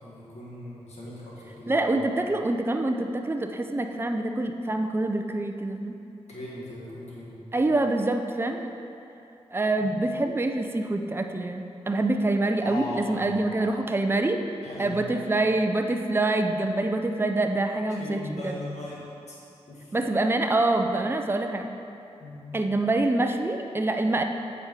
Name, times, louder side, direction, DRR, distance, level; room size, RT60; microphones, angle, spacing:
voice 1, 0.0-1.9 6.3-7.4 9.8-9.9 12.6-13.7 14.6-15.3 17.9-19.4 19.7-19.9 22.2-22.5, left 1 dB, 75° left, -6 dB, 2.0 m, -39 dB
voice 2, 1.7-6.0 7.5-8.7 9.5-14.4 14.8-18.6 19.9-21.7 22.5-24.2, right 2 dB, 20° right, 5 dB, 0.6 m, -26 dB
8.4 x 5.2 x 4.8 m, 2.7 s
cardioid pair, 55°, 12 cm